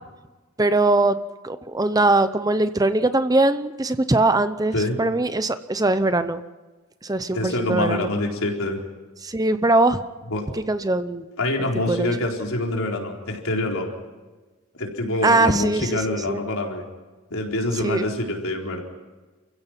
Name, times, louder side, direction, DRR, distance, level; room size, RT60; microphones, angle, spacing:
voice 1, 0.6-1.2 1.4-6.4 7.0-8.1 9.2-10.0 10.5-11.2 11.9-12.1 15.2-16.4 17.8-18.1, right 2 dB, 15° right, 11 dB, 0.6 m, -21 dB
voice 2, 7.3-8.8 10.3-10.5 11.4-13.9 14.8-16.8 17.3-18.8, left 2 dB, 65° left, 1 dB, 4.2 m, -25 dB
29.5 x 16.0 x 5.9 m, 1.2 s
head